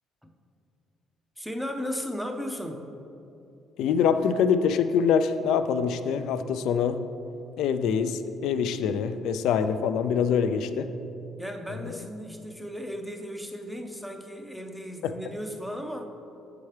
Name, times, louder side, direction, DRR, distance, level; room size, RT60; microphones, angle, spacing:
voice 1, 1.4-2.9 11.4-16.1, equal, ahead, 3 dB, 0.4 m, -35 dB
voice 2, 3.8-7.0 7.6-10.9 11.8-12.0 15.0-15.1, left 7 dB, 75° left, 10 dB, 0.3 m, -25 dB
8.1 x 5.8 x 3.2 m, 2.8 s
cardioid pair, 170°, 0 cm